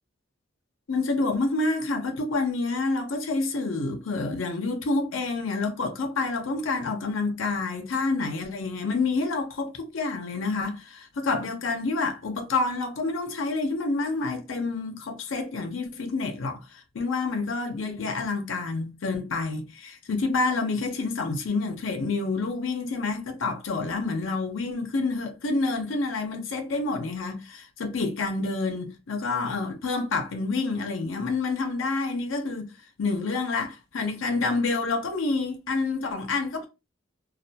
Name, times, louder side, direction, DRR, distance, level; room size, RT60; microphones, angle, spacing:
voice 1, 0.9-32.7 33.0-36.7, left 3 dB, 85° left, 0.5 m, -28 dB
2.3 x 2.2 x 2.6 m
head